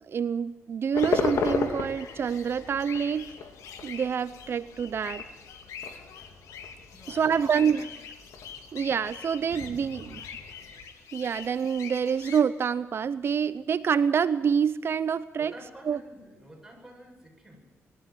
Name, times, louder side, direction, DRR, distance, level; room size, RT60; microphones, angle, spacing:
voice 1, 0.1-3.3 3.8-5.2 7.1-7.9 8.7-10.2 11.1-15.5 15.9-16.0, right 7 dB, 50° right, 15 dB, 0.7 m, -27 dB
sound 1, 0.9-10.8, left 5 dB, 70° left, 2.9 m, -35 dB
sound 2, 1.0-12.4, left 7 dB, 85° left, 2.1 m, -45 dB
voice 2, 6.9-8.0 9.3-10.0 15.4-17.6, right 1 dB, 5° right, -1 dB, 7.7 m, -50 dB
21.5 x 14.0 x 9.3 m, 1.0 s
cardioid pair, 95°, 5 cm